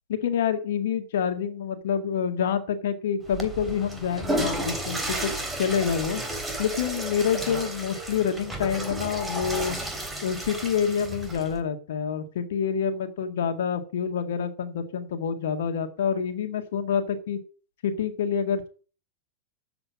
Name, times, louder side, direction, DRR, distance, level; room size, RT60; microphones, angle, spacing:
voice 1, 0.1-5.3 5.6-6.2 6.6-9.8 10.2-17.4 17.8-18.7, left 7 dB, 75° left, 7 dB, 1.8 m, -27 dB
Water / Toilet flush, 3.2-11.6, right 1 dB, 10° right, 2.8 m, -32 dB
7.9 x 7.0 x 8.4 m, 0.40 s
hypercardioid pair, 110°, 0 cm